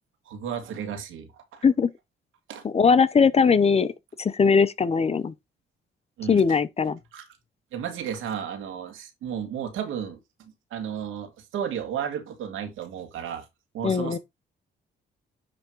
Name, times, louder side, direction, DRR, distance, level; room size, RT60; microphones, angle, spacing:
voice 1, 0.3-1.6 2.5-2.6 6.2-6.4 7.1-7.3 7.7-13.4 13.7-14.2, right 8 dB, 85° right, 2.2 m, -33 dB
voice 2, 2.6-3.9 4.2-5.3 6.3-7.0 13.8-14.2, left 5 dB, 30° left, 0.6 m, -20 dB
10.0 x 3.5 x 4.5 m
cardioid pair, 90°, 20 cm